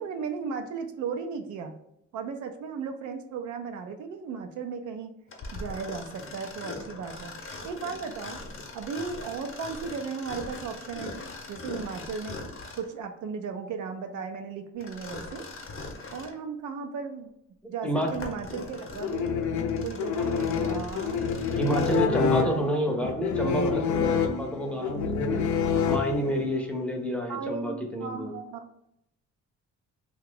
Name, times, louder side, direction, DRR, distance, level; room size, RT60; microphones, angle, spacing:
voice 1, 0.0-1.7 2.1-5.1 5.5-7.3 7.6-8.4 8.7-11.1 11.5-12.4 12.8-15.5 16.1-17.3 17.7-19.3 19.8-21.2 21.9-22.7 27.3-28.7, right 5 dB, 75° right, 6 dB, 0.5 m, -35 dB
Mechanisms, 5.3-13.0 14.8-16.4 17.0-17.1 17.8-22.1, left 3 dB, 45° left, 0.8 m, -41 dB
voice 2, 17.8-18.1 21.5-25.4 25.9-28.3, equal, 5° left, 1 dB, 0.6 m, -29 dB
sound 1, 19.0-26.5, left 6 dB, 75° left, 0.5 m, -27 dB
2.8 x 2.3 x 3.8 m, 0.77 s
cardioid pair, 90°, 30 cm